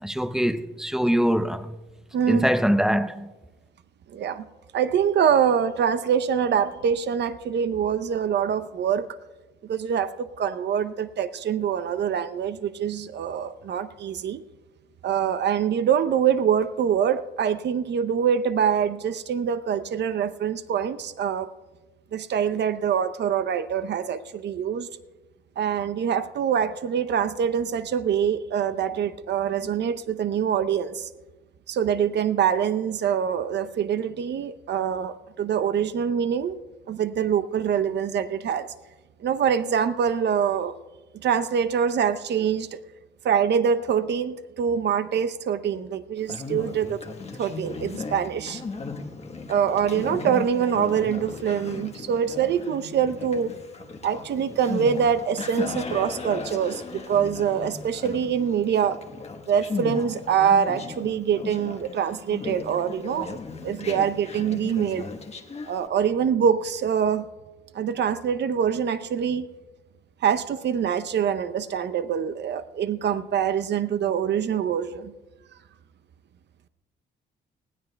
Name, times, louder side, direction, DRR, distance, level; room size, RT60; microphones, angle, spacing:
voice 1, 0.0-1.7 2.3-3.3, equal, 5° right, 0.6 m, -23 dB
voice 2, 2.1-2.4 4.1-4.5 4.7-9.2 9.6-14.4 15.0-21.5 22.1-24.9 25.6-31.1 31.7-36.6 36.9-38.7 39.2-40.7 41.1-42.8 43.2-47.0 47.4-48.6 49.5-53.5 54.0-59.0 59.5-63.4 63.6-65.1 65.7-67.3 67.7-69.5 70.2-75.1, right 8 dB, 60° right, 0.7 m, -24 dB
Conversation, 46.2-65.9, left 4 dB, 30° left, 1.2 m, -36 dB
20.0 x 16.0 x 2.3 m
cardioid pair, 90°, 20 cm